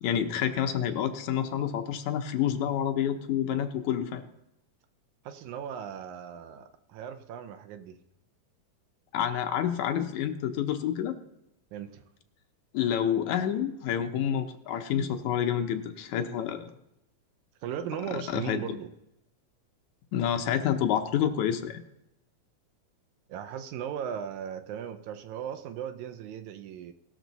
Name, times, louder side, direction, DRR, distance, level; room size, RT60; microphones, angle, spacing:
voice 1, 0.0-4.3 9.1-11.2 12.7-16.7 18.1-18.6 20.1-21.8, left 9 dB, 75° left, 6 dB, 2.0 m, -28 dB
voice 2, 5.2-8.0 11.7-12.0 17.6-18.9 23.3-26.9, right 9 dB, 75° right, 8 dB, 2.0 m, -37 dB
18.5 x 6.5 x 4.0 m, 0.86 s
omnidirectional pair, 3.6 m